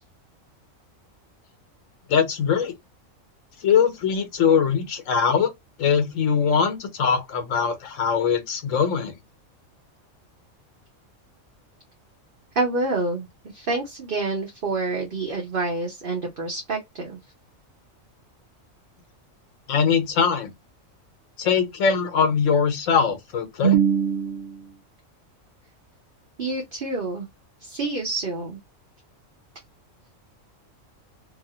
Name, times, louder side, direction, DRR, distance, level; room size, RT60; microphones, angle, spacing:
voice 1, 2.1-2.7 3.6-5.5 5.8-9.1 19.7-20.5 21.4-23.7, left 6 dB, 70° left, 1.1 m, -22 dB
voice 2, 12.5-13.3 13.5-17.2 23.6-24.8 26.4-27.3 27.6-28.6, right 4 dB, 45° right, 1.0 m, -26 dB
2.8 x 2.7 x 2.7 m
omnidirectional pair, 1.4 m